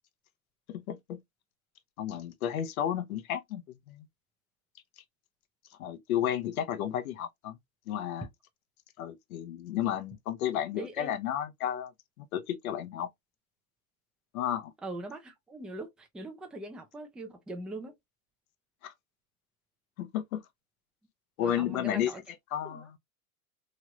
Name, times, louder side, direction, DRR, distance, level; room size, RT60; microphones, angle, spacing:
voice 1, 0.7-1.2 2.0-4.0 5.8-7.6 7.9-8.3 9.0-11.9 12.2-13.1 14.3-14.7 18.8-18.9 20.0-20.4 21.4-22.1 22.5-23.0, left 10 dB, 80° left, 0.7 m, -32 dB
voice 2, 10.8-11.1 14.8-17.9 21.4-22.2 22.6-22.8, right 2 dB, ahead, 0.4 m, -41 dB
3.1 x 2.9 x 2.3 m
hypercardioid pair, 115°, 42 cm